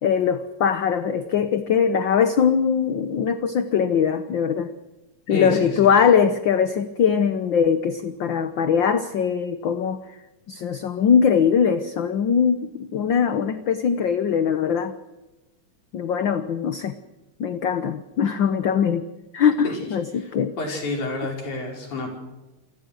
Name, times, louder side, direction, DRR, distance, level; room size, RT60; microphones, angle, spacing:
voice 1, 0.0-4.7 5.3-10.0 10.5-14.9 15.9-17.0 17.4-19.0 19.3-20.6, left 7 dB, 60° left, 10 dB, 1.3 m, -21 dB
voice 2, 5.3-5.9 19.6-19.9 20.2-20.3 20.6-22.1, left 2 dB, 85° left, 1 dB, 6.7 m, -29 dB
28.5 x 20.5 x 6.4 m, 1.1 s
omnidirectional pair, 3.3 m